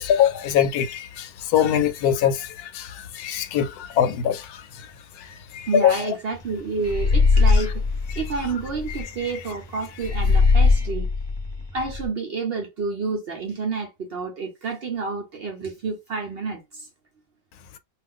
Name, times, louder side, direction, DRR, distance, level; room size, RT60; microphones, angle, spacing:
voice 1, 0.0-2.5 2.7-2.9 3.1-4.4 5.5-6.2, left 9 dB, 80° left, 1.1 m, -22 dB
voice 2, 5.7-7.7 8.2-11.1 11.7-16.9, right 4 dB, 60° right, 0.7 m, -29 dB
sound 1, 6.9-9.0 10.0-12.1, left 4 dB, 25° left, 0.6 m, -20 dB
2.5 x 2.5 x 3.5 m
omnidirectional pair, 1.6 m